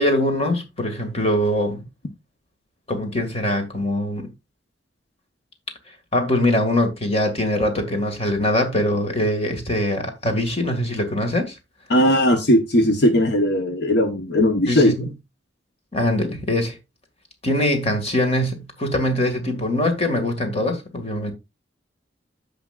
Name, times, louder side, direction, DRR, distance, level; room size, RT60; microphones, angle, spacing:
voice 1, 0.0-1.8 2.9-4.3 6.1-11.6 14.7-15.1 15.9-16.8 17.4-21.3, left 1 dB, 35° left, 1.9 m, -22 dB
voice 2, 11.9-14.9, equal, 65° left, 1.1 m, -18 dB
15.0 x 5.1 x 2.4 m
head